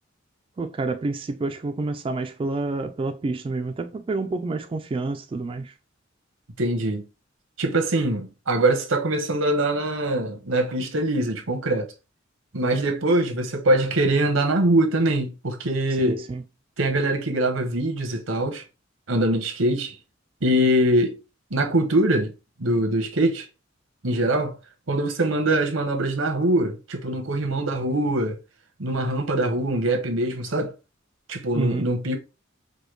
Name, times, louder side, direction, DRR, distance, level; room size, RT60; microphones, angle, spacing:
voice 1, 0.6-5.7 16.0-16.4 31.5-31.9, right 3 dB, 25° right, 0.3 m, -28 dB
voice 2, 6.6-7.0 7.6-11.9 12.5-16.3 16.8-18.6 19.1-20.0 20.4-21.2 21.5-22.3 22.6-23.4 24.0-24.6 24.9-28.4 28.8-30.7 31.3-32.2, right 1 dB, 85° right, 1.0 m, -23 dB
5.0 x 2.2 x 3.1 m
head